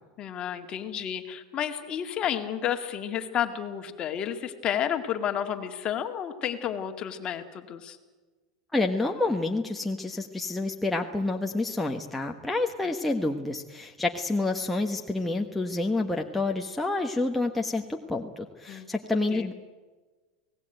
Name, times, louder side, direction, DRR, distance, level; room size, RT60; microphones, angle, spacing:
voice 1, 0.2-8.0 18.7-18.9 19.3-19.5, left 9 dB, 30° left, 6 dB, 2.1 m, -31 dB
voice 2, 8.7-19.5, left 2 dB, 5° left, 1 dB, 1.2 m, -28 dB
28.5 x 18.5 x 9.2 m, 1.4 s
supercardioid pair, 140°, 3 cm